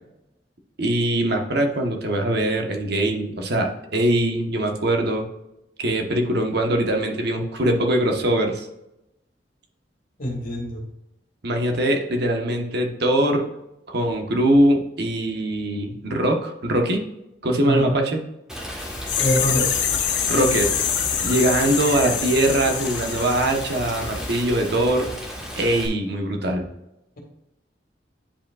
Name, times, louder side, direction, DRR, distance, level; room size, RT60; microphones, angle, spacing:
voice 1, 0.8-5.3 5.8-8.7 11.4-13.4 13.9-17.0 17.4-18.2 20.3-20.7 21.2-25.1 25.6-26.7, right 1 dB, 65° right, 3 dB, 1.1 m, -22 dB
voice 2, 10.2-10.8 17.6-18.0 19.2-19.7, equal, 55° left, 0 dB, 1.8 m, -25 dB
Rain, 18.5-25.9, equal, 5° right, 1.3 m, -34 dB
sound 1, 18.8-24.4 24.7-24.8, left 8 dB, 75° left, 0.9 m, -26 dB
10.0 x 5.1 x 2.3 m, 0.87 s
head